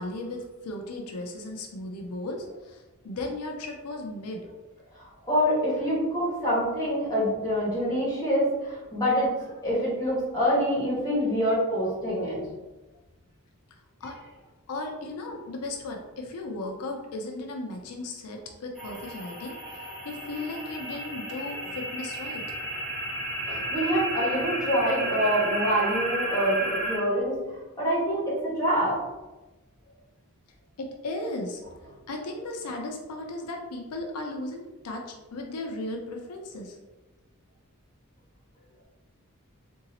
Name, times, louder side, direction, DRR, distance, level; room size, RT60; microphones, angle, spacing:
voice 1, 0.0-4.5 6.2-6.4 14.0-14.2 14.7-22.4 30.8-31.6 32.1-36.8, left 2 dB, 90° left, 2 dB, 0.5 m, -36 dB
voice 2, 5.0-9.3 9.6-12.4 23.5-27.3 27.8-29.0, equal, 15° left, -7 dB, 1.5 m, -26 dB
sound 1, 18.8-27.0, right 1 dB, ahead, 0.9 m, -32 dB
3.8 x 2.7 x 2.8 m, 1.1 s
head